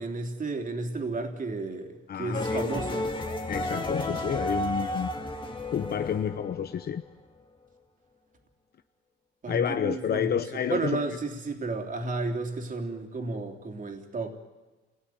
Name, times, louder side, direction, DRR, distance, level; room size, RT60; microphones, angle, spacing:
voice 1, 0.0-3.1 9.4-14.3, right 3 dB, 40° right, 4 dB, 3.4 m, -32 dB
voice 2, 2.1-2.9 3.5-5.1 5.7-7.0 9.5-11.0, left 8 dB, 55° left, 9 dB, 0.9 m, -30 dB
sound 1, 2.3-7.1, left 1 dB, 25° left, 2.2 m, -32 dB
28.5 x 17.5 x 9.4 m, 1.3 s
cardioid pair, 90°, 20 cm